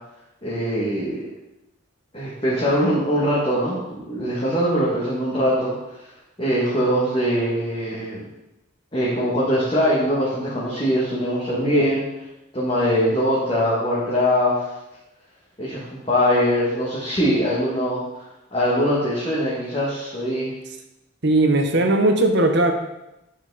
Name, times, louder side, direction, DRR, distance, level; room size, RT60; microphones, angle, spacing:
voice 1, 0.4-1.2 2.1-5.7 6.4-8.2 8.9-12.0 12.5-14.7 15.6-18.0 18.5-20.5, equal, 25° left, -8 dB, 2.1 m, -22 dB
voice 2, 21.2-22.7, right 2 dB, 55° right, 5 dB, 1.1 m, -18 dB
11.0 x 7.3 x 4.2 m, 0.92 s
head